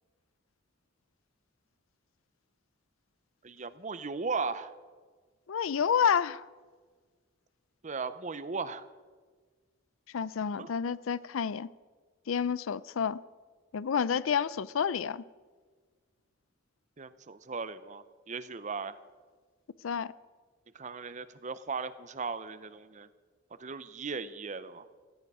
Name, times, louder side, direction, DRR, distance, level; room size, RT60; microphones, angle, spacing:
voice 1, 3.4-4.7 7.8-8.9 10.5-10.7 17.0-19.0 20.7-23.1 23.6-24.9, right 4 dB, 40° right, 0.7 m, -37 dB
voice 2, 5.5-6.4 10.1-11.7 12.3-13.2 13.7-15.2 19.8-20.1, left 7 dB, 85° left, 0.5 m, -29 dB
17.0 x 13.5 x 4.9 m
head